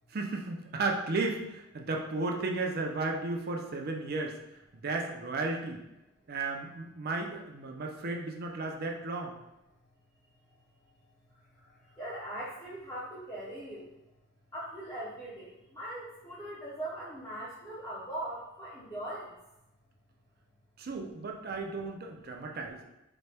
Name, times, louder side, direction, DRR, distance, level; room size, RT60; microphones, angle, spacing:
voice 1, 0.1-4.4 4.7-5.8 6.3-9.3 20.8-22.8, right 3 dB, 50° right, 2 dB, 0.5 m, -34 dB
voice 2, 12.0-13.9 14.5-19.3, right 1 dB, 15° left, -8 dB, 0.6 m, -40 dB
4.1 x 2.2 x 3.3 m, 0.92 s
head